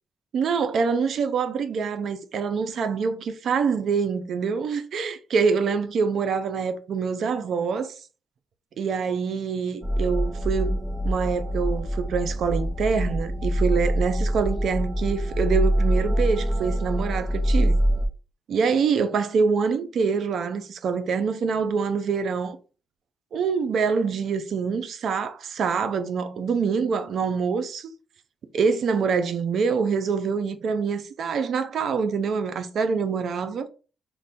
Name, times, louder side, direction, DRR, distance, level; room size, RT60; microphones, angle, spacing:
voice 1, 0.3-7.9 8.8-10.8 11.0-17.8 18.5-22.6 23.3-27.9 28.5-33.7, right 5 dB, 70° right, 0.5 m, -25 dB
sound 1, 9.8-18.1, equal, 15° right, 0.6 m, -24 dB
3.2 x 2.2 x 4.1 m
cardioid pair, 85°, 0 cm